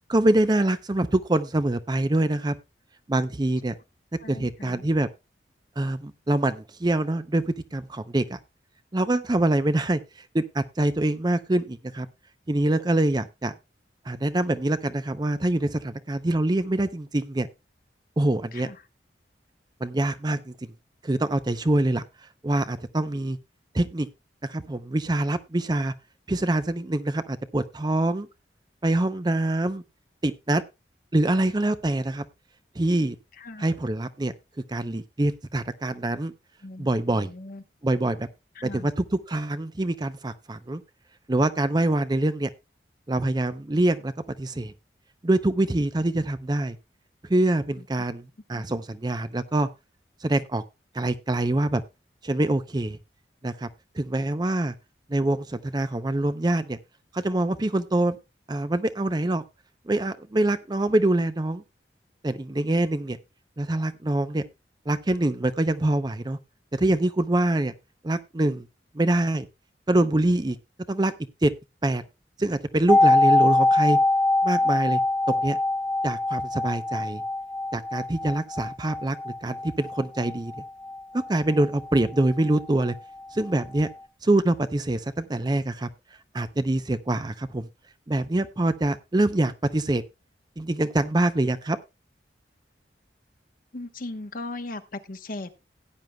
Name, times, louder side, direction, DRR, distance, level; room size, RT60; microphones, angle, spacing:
voice 1, 0.1-2.5 3.1-3.7 4.3-5.1 5.8-8.4 8.9-10.0 10.3-12.1 12.5-13.5 14.1-17.5 18.2-18.7 19.8-20.5 21.0-22.0 22.4-23.4 23.7-24.1 24.5-25.9 26.3-28.3 28.8-29.8 30.2-30.6 31.1-32.2 32.8-33.2 33.6-34.3 34.7-36.3 36.8-37.3 37.8-38.3 38.6-40.8 41.3-42.5 43.1-44.1 44.4-44.7 45.2-46.8 47.3-49.7 50.2-50.6 50.9-51.8 52.2-53.0 53.4-53.7 54.0-54.7 55.1-56.8 57.1-58.2 58.5-59.4 59.9-61.6 62.2-63.2 63.6-64.4 64.9-66.4 66.7-67.7 68.0-68.7 68.9-69.5 69.9-70.6 70.9-71.1 71.4-71.5 71.8-72.0 72.4-74.0 74.4-75.0 75.3-75.6 76.0-77.2 77.7-80.5 81.1-82.9 83.3-83.9 84.2-85.9 86.3-87.7 88.1-90.0 90.6-91.8, right 1 dB, 25° right, 0.6 m, -25 dB
voice 2, 4.2-4.8 18.5-18.8 33.4-33.7 36.6-37.6 38.6-38.9 48.5-48.6 93.7-95.5, left 2 dB, 50° left, 1.0 m, -38 dB
sound 1, 72.9-82.6 82.9-83.0, left 2 dB, 5° left, 1.3 m, -24 dB
17.0 x 9.3 x 2.2 m
head